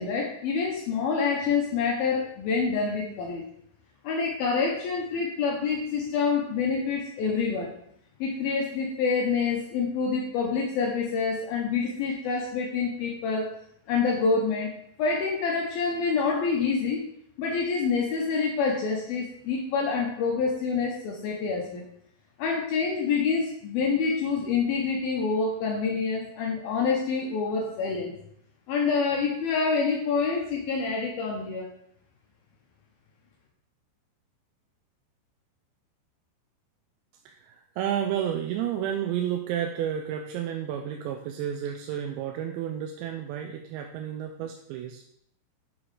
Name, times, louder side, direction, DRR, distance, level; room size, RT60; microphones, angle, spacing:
voice 1, 0.0-3.5 4.0-7.7 8.2-13.6 13.9-14.7 15.0-17.0 17.4-21.8 22.4-28.1 28.7-31.7, left 5 dB, 75° left, -1 dB, 2.3 m, -27 dB
voice 2, 37.3-45.0, right 10 dB, 85° right, 3 dB, 2.8 m, -31 dB
7.4 x 3.8 x 4.8 m, 0.69 s
omnidirectional pair, 5.2 m